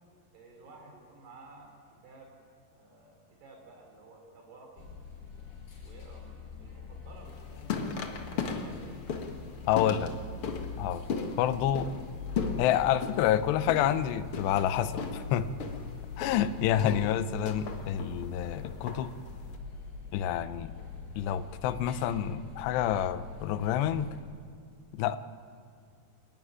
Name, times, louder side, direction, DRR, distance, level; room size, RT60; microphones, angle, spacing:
voice 1, 0.3-2.4 2.7-4.9 5.8-9.5 9.8-10.2, right 2 dB, 75° right, 2 dB, 5.8 m, -53 dB
sound 1, 4.8-24.2, left 5 dB, 75° left, 6.7 m, -43 dB
sound 2, 7.3-19.6, left 5 dB, 55° left, 1.5 m, -38 dB
voice 2, 9.7-10.1 10.8-11.0 11.4-11.9 12.6-15.5 16.2-19.1 20.1-20.7 21.2-24.1 24.9-25.2, left 10 dB, 90° left, 13 dB, 3.0 m, -28 dB
29.5 x 13.0 x 9.6 m, 2.1 s
omnidirectional pair, 4.8 m